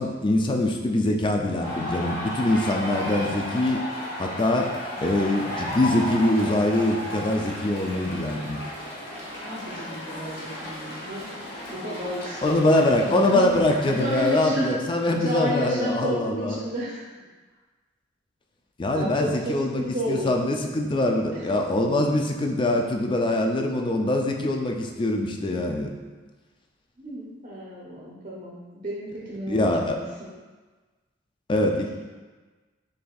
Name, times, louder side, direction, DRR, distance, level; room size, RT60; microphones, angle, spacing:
voice 1, 0.0-3.8 4.2-4.7 5.0-8.6 12.4-16.6 18.8-19.8 20.1-25.9 29.5-30.0 31.5-31.9, left 1 dB, 25° left, 2 dB, 0.3 m, -23 dB
sound 1, 1.6-14.5, left 1 dB, 55° left, 1.1 m, -34 dB
voice 2, 9.4-11.3 11.7-13.4 14.0-14.7 15.1-17.0 18.9-20.3 21.3-21.5 27.0-30.3 31.7-31.9, equal, 40° right, -5 dB, 0.6 m, -32 dB
6.5 x 2.6 x 2.3 m, 1.3 s
head